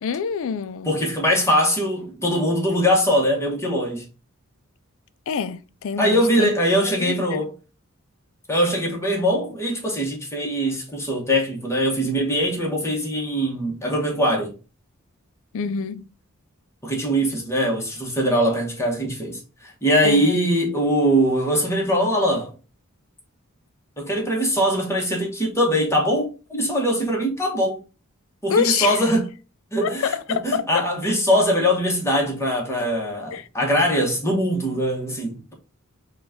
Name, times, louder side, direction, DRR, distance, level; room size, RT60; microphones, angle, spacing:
voice 1, 0.0-0.9 5.3-6.5 7.0-7.4 15.5-16.1 20.0-20.4 28.5-29.0 29.8-30.6 33.3-33.5, left 6 dB, 65° left, 0.4 m, -26 dB
voice 2, 0.8-4.0 6.0-7.5 8.5-14.5 16.8-22.5 24.0-27.8 28.4-29.3 29.7-35.5, equal, 10° left, 1.0 m, -22 dB
4.0 x 2.3 x 3.5 m
head